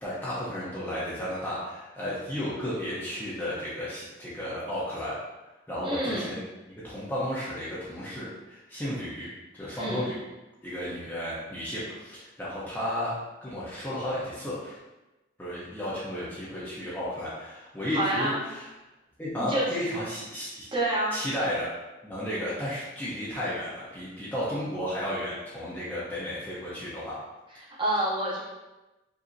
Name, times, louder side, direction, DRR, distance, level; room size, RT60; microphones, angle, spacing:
voice 1, 0.0-5.2 5.7-6.4 6.8-9.3 9.5-10.2 10.6-13.1 13.4-14.8 15.4-18.7 19.2-20.6 21.1-21.7 22.0-27.2, equal, 10° left, -9 dB, 0.8 m, -33 dB
voice 2, 5.8-6.4 9.8-10.0 17.9-18.4 19.4-19.6 20.7-21.2 27.7-28.4, right 1 dB, 25° right, -7 dB, 1.1 m, -28 dB
5.2 x 2.7 x 2.7 m, 1.1 s
head